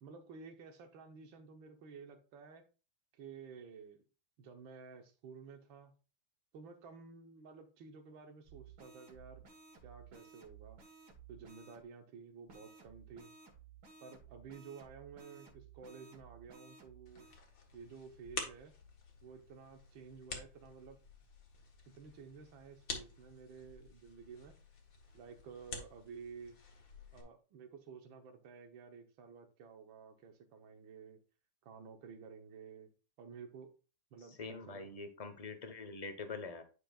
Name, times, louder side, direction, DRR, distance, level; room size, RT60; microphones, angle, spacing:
voice 1, 0.0-2.6 3.1-4.0 4.4-5.9 6.5-9.5 9.8-10.8 11.3-13.3 14.0-17.3 17.7-18.7 19.2-21.0 21.9-24.5 25.1-26.6 27.1-31.2 31.6-32.9 33.2-33.7 34.1-34.9, right 5 dB, 85° right, 1.8 m, -53 dB
sound 1, 8.4-11.8 12.5-17.4, right 6 dB, 60° right, 2.0 m, -57 dB
sound 2, 17.1-27.2, left 4 dB, 75° left, 2.2 m, -49 dB
voice 2, 34.4-36.6, left 4 dB, 35° left, 0.6 m, -44 dB
9.6 x 6.5 x 2.4 m
omnidirectional pair, 2.1 m